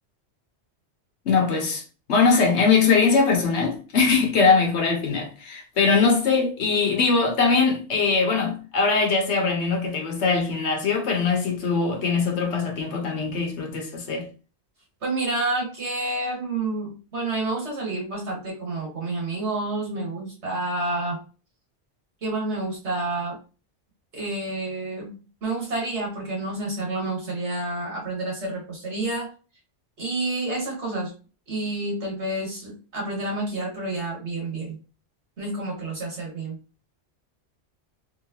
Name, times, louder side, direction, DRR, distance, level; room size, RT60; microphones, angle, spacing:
voice 1, 1.2-1.8 2.1-14.3, left 4 dB, 80° left, 1.2 m, -21 dB
voice 2, 15.0-21.2 22.2-23.4 24.1-29.3 30.0-31.1 31.5-34.8 35.4-36.6, right 2 dB, 80° right, 1.7 m, -29 dB
3.1 x 2.9 x 2.9 m
omnidirectional pair, 1.1 m